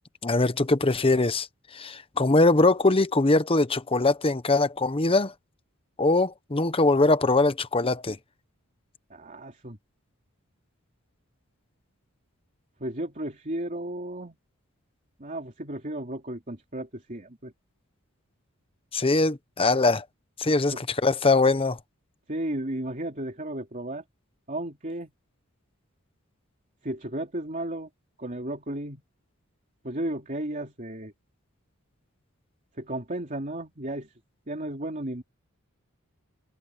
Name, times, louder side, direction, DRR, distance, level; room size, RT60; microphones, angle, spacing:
voice 1, 0.2-1.5 1.7-5.3 6.0-8.2 18.9-20.0 20.4-21.8, left 2 dB, 25° left, 0.9 m, -22 dB
voice 2, 9.1-9.8 12.8-14.4 15.2-17.5 20.7-20.8 22.3-24.0 24.5-25.1 26.8-27.9 28.2-29.0 29.8-31.1 32.8-34.1 34.5-35.2, right 1 dB, 35° right, 3.3 m, -34 dB
head